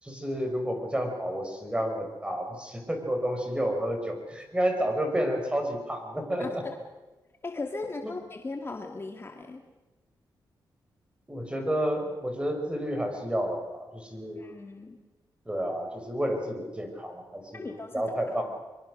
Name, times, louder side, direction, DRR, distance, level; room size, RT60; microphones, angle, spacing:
voice 1, 0.0-6.6 8.0-8.1 11.3-14.4 15.5-18.5, equal, 15° right, 4 dB, 5.9 m, -30 dB
voice 2, 6.4-6.8 7.4-9.6 14.4-15.0 17.5-18.0, left 3 dB, 30° left, 4 dB, 2.0 m, -37 dB
24.0 x 23.0 x 6.5 m, 1.1 s
cardioid pair, 90°, 8 cm